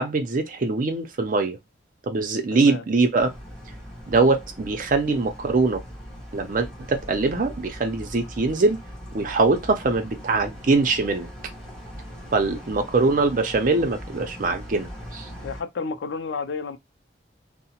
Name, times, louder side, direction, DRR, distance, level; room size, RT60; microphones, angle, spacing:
voice 1, 0.0-1.6 2.1-3.3 4.1-5.8 6.3-8.8 9.1-11.3 12.3-15.3, right 3 dB, 50° right, 0.5 m, -22 dB
voice 2, 2.5-2.8 12.4-12.6 15.4-16.8, left 4 dB, 85° left, 0.4 m, -31 dB
sound 1, 3.2-15.6, equal, 5° left, 1.1 m, -40 dB
2.8 x 2.0 x 2.8 m
head